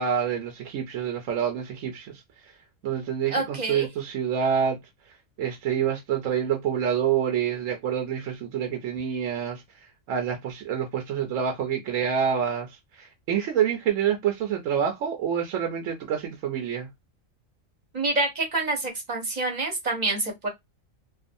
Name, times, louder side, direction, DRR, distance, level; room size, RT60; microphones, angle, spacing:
voice 1, 0.0-2.2 2.8-4.8 5.4-9.6 10.1-16.9, right 8 dB, 75° right, 0.9 m, -27 dB
voice 2, 3.3-3.9 17.9-20.5, right 2 dB, 40° right, 0.8 m, -27 dB
2.5 x 2.3 x 2.5 m
omnidirectional pair, 1.4 m